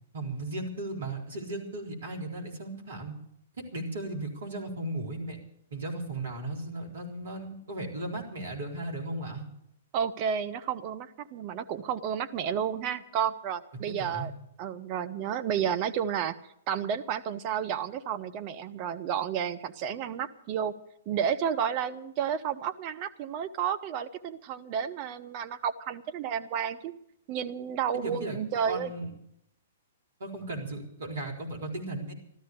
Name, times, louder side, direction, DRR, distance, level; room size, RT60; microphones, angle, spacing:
voice 1, 0.1-3.1 3.6-5.4 5.7-9.5 13.9-14.3 27.9-28.4 28.7-29.1 30.2-32.1, right 2 dB, 60° right, 1 dB, 3.9 m, -36 dB
voice 2, 9.9-14.3 14.6-16.3 16.7-20.7 21.1-26.9 27.3-28.9, right 8 dB, 35° right, 9 dB, 0.8 m, -31 dB
14.0 x 13.0 x 6.8 m, 0.77 s
figure-of-eight pair, 115°, 0 cm